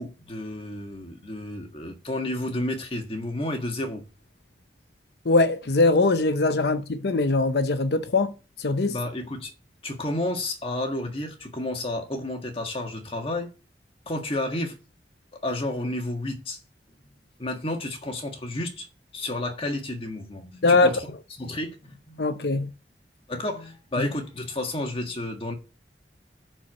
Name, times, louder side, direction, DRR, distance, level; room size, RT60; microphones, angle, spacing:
voice 1, 0.0-4.0 8.9-9.5 9.8-13.5 14.1-14.8 15.4-16.6 17.4-18.9 19.1-21.1 21.4-22.6 23.3-25.5, left 1 dB, 30° left, 1.7 m, -31 dB
voice 2, 5.3-8.3 8.6-9.0 20.6-20.9 22.2-22.7 24.0-24.1, left 3 dB, 65° left, 0.7 m, -21 dB
10.0 x 4.6 x 6.4 m
head